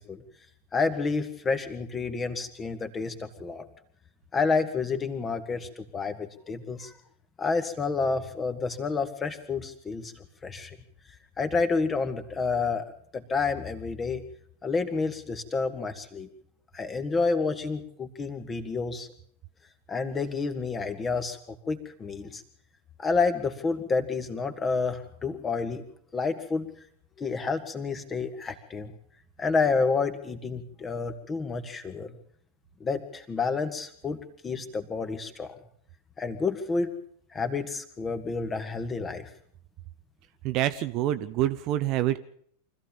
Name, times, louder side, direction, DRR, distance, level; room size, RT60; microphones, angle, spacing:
voice 1, 0.7-3.6 4.3-6.9 7.4-10.8 11.4-12.9 13.1-14.2 14.6-16.3 16.7-19.1 19.9-22.4 23.0-25.8 26.1-26.7 27.2-28.9 29.4-32.2 32.8-35.5 36.2-37.0 37.3-39.3, left 4 dB, 20° left, 9 dB, 2.0 m, -29 dB
voice 2, 40.4-42.2, right 13 dB, 40° right, 11 dB, 0.8 m, -26 dB
25.0 x 15.0 x 7.3 m, 0.65 s
figure-of-eight pair, 90°, 0 cm